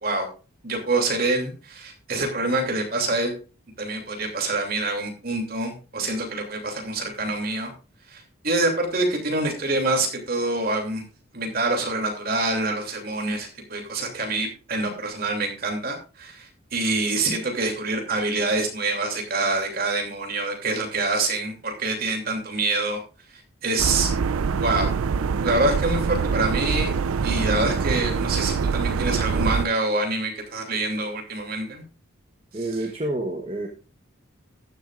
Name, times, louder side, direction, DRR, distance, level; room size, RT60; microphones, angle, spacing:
voice 1, 0.6-3.3 3.8-7.7 8.1-11.0 11.3-23.0 23.6-24.1 24.6-24.9 25.4-26.9 27.2-31.8, right 2 dB, 45° right, 2 dB, 2.8 m, -26 dB
sound 1, 23.8-29.7, right 5 dB, 85° right, 0.4 m, -24 dB
voice 2, 32.5-33.7, right 1 dB, 25° right, 1 dB, 1.1 m, -28 dB
14.5 x 10.5 x 2.5 m, 0.34 s
head